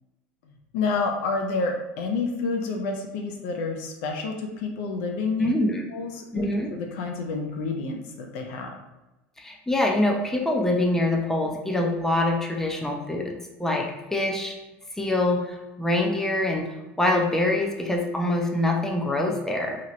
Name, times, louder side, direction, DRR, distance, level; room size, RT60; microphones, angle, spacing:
voice 1, 0.5-5.6 5.9-8.7, left 3 dB, 70° left, 2 dB, 0.5 m, -29 dB
voice 2, 5.4-5.8 6.3-6.7 9.4-13.9 14.1-14.5 15.0-16.7 17.0-19.8, left 1 dB, 5° left, 0 dB, 0.6 m, -24 dB
2.9 x 2.3 x 3.0 m, 1.0 s
hypercardioid pair, 85°, 7 cm